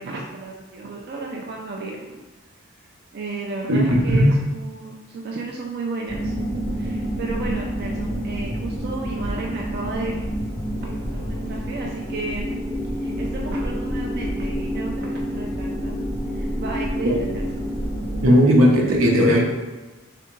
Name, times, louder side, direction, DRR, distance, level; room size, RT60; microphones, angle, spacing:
voice 1, 0.0-2.2 3.1-6.3 6.7-10.1 10.8-12.5 12.9-16.0 16.3-17.4 17.8-18.3, right 3 dB, 50° right, -2 dB, 0.4 m, -33 dB
sound 1, 6.1-18.3, equal, 15° left, 0.5 m, -28 dB
voice 2, 18.2-19.4, equal, 85° right, -1 dB, 0.8 m, -15 dB
3.4 x 3.4 x 3.1 m, 1.2 s
head